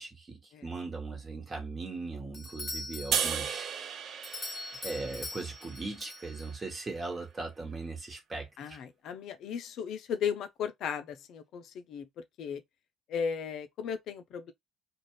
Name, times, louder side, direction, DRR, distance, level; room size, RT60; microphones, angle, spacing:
voice 1, 0.0-3.7 3.9-4.5 4.8-8.8, right 3 dB, 30° right, 1.2 m, -39 dB
Doorbell, 2.3-6.8, left 2 dB, 35° left, 0.8 m, -43 dB
sound 1, 3.1-6.4, right 8 dB, 50° right, 0.3 m, -35 dB
voice 2, 8.6-12.6 13.1-14.5, left 7 dB, 60° left, 0.4 m, -36 dB
2.5 x 2.3 x 3.1 m
figure-of-eight pair, 50°, 0 cm